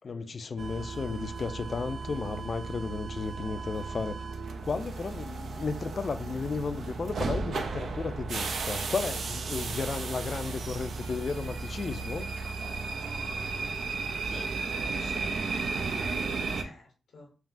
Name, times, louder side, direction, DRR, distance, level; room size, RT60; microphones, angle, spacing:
voice 1, 0.0-4.2 4.6-12.3, left 4 dB, 50° left, 0.4 m, -34 dB
sound 1, 0.6-16.6, right 4 dB, 70° right, 0.4 m, -34 dB
voice 2, 14.2-17.4, left 3 dB, 80° left, 0.8 m, -51 dB
3.4 x 2.3 x 2.5 m
cardioid pair, 60°, 0 cm